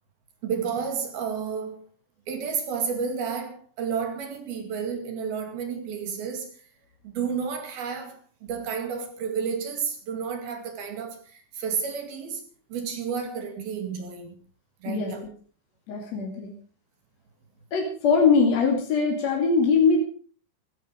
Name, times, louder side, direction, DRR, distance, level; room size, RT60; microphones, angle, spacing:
voice 1, 0.4-1.8 2.3-6.5 7.1-12.4 12.7-14.4 14.8-15.2, right 6 dB, 55° right, 3.8 m, -31 dB
voice 2, 15.9-16.5 17.7-20.0, left 5 dB, 40° left, 3.1 m, -21 dB
16.0 x 15.0 x 5.1 m
omnidirectional pair, 5.5 m